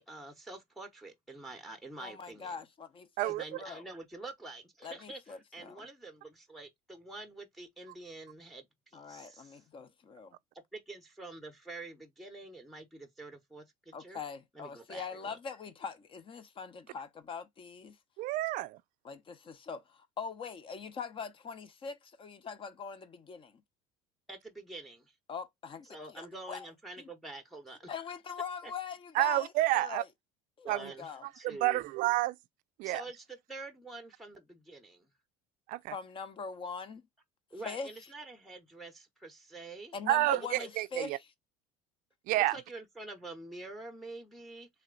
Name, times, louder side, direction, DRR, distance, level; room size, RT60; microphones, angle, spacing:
voice 1, 0.0-2.6 3.3-9.6 10.7-14.2 14.5-15.4 24.3-25.1 25.9-27.9 28.6-28.7 30.6-31.8 32.8-35.1 37.5-39.9 40.3-40.7 42.5-44.7, right 2 dB, ahead, 0.8 m, -47 dB
voice 2, 2.0-3.8 4.8-5.9 8.9-10.4 13.9-18.0 19.0-23.6 25.3-26.7 27.0-27.1 27.8-30.1 30.6-31.3 35.9-37.0 37.6-37.9 39.9-41.3, left 6 dB, 35° left, 0.7 m, -42 dB
voice 3, 18.2-18.8 29.1-30.0 30.7-30.9 31.4-32.4 32.8-33.0 35.7-35.9 40.1-41.2 42.3-42.6, right 18 dB, 55° right, 0.4 m, -29 dB
3.4 x 2.9 x 3.7 m
supercardioid pair, 105°, 16 cm